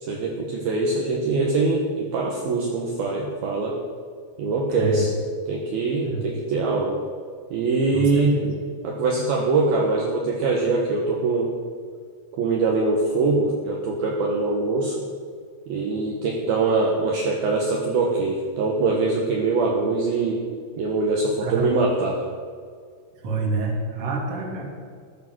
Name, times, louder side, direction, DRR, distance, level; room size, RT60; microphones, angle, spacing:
voice 1, 0.0-3.8 4.4-5.1 5.5-7.0 7.5-8.4 8.8-11.5 12.3-15.0 15.7-20.4 20.8-22.2, right 3 dB, 65° right, -1 dB, 2.9 m, -23 dB
voice 2, 4.8-5.1 6.0-6.2 7.9-8.5 21.4-21.7 23.2-24.6, right 3 dB, 35° right, -1 dB, 2.9 m, -27 dB
14.0 x 12.0 x 6.3 m, 2.1 s
omnidirectional pair, 5.5 m